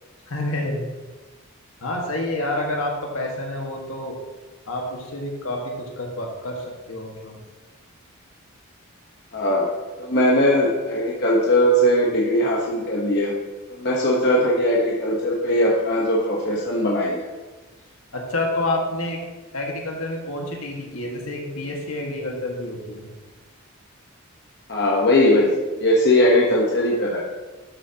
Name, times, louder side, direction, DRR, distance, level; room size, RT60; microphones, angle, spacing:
voice 1, 0.3-0.9 1.8-4.2 4.7-7.4 18.1-19.2 19.5-23.1, left 1 dB, 75° left, 0 dB, 1.8 m, -28 dB
voice 2, 9.3-9.7 10.0-13.3 13.7-17.3 24.7-27.2, left 1 dB, 50° left, -3 dB, 1.2 m, -20 dB
12.0 x 7.1 x 3.0 m, 1.2 s
head